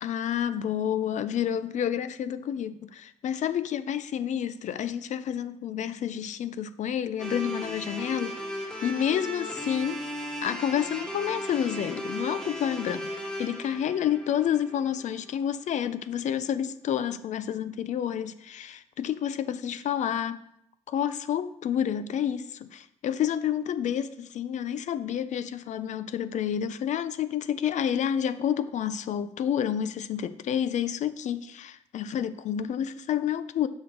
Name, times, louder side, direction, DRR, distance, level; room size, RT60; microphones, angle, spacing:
voice 1, 0.0-2.7 3.2-8.4 8.8-10.0 10.4-13.1 13.4-20.4 20.9-33.7, left 9 dB, 70° left, 0.5 m, -29 dB
sound 1, 7.2-15.3, equal, 5° left, 0.9 m, -36 dB
6.8 x 6.2 x 3.8 m
wide cardioid pair, 170°, 13 cm